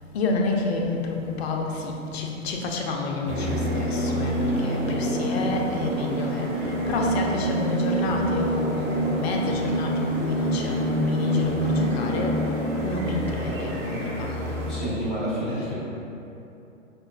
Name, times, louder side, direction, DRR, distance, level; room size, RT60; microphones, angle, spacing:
voice 1, 0.1-12.4 12.8-14.6, left 3 dB, 50° left, 1 dB, 0.5 m, -29 dB
sound 1, 3.2-14.8, right 1 dB, 15° right, 0.3 m, -26 dB
voice 2, 14.7-15.8, equal, ahead, -9 dB, 0.8 m, -29 dB
5.6 x 2.1 x 2.3 m, 2.8 s
hypercardioid pair, 125°, 39 cm